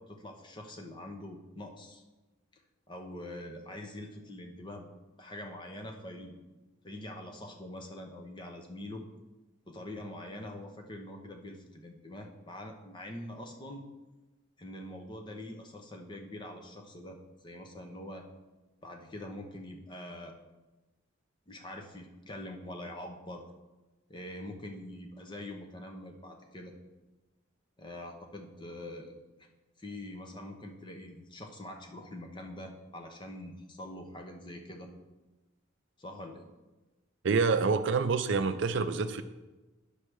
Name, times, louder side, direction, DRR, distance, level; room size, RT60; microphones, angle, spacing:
voice 1, 0.0-2.0 2.5-2.6 2.9-4.9 5.2-6.4 6.8-9.0 9.7-13.8 14.6-17.2 17.4-18.3 18.8-20.3 21.5-23.4 24.1-26.7 27.8-29.1 29.8-34.9 36.0-36.4, left 1 dB, 20° left, 3 dB, 0.8 m, -44 dB
voice 2, 37.2-39.2, right 4 dB, 60° right, 10 dB, 0.4 m, -27 dB
9.9 x 3.3 x 6.2 m, 1.1 s
head